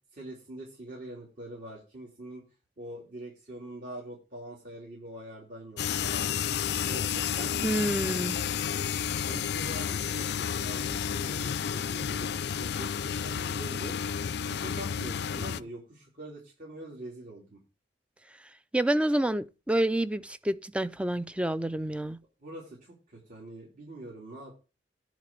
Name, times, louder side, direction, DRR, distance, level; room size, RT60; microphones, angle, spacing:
voice 1, 0.1-2.4 2.8-6.3 6.8-7.8 9.2-10.3 10.6-12.9 13.2-14.0 14.5-17.6 22.4-24.5, right 1 dB, 50° right, 3.4 m, -44 dB
sound 1, 5.8-15.6, left 8 dB, 65° left, 0.4 m, -31 dB
voice 2, 7.6-8.4 18.7-22.2, right 1 dB, 5° right, 0.4 m, -28 dB
10.5 x 4.0 x 7.5 m
head